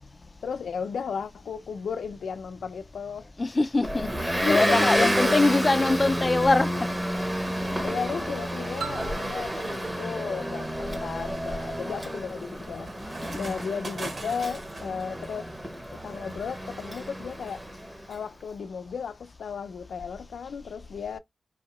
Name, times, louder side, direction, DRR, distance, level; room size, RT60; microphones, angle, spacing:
voice 1, 0.4-3.3 4.3-5.5 7.5-13.0 13.4-15.5 15.9-17.7 18.1-21.2, left 6 dB, 90° left, 0.5 m, -34 dB
voice 2, 3.4-4.1 4.5-6.7 13.2-13.5, left 2 dB, 25° left, 0.4 m, -23 dB
Motor vehicle (road) / Engine, 3.8-18.1, equal, 10° right, 0.7 m, -30 dB
sound 1, 8.8-11.5, right 6 dB, 80° right, 0.3 m, -42 dB
sound 2, 10.4-15.0, right 2 dB, 40° right, 1.2 m, -42 dB
4.5 x 2.8 x 3.0 m
wide cardioid pair, 150°, 0 cm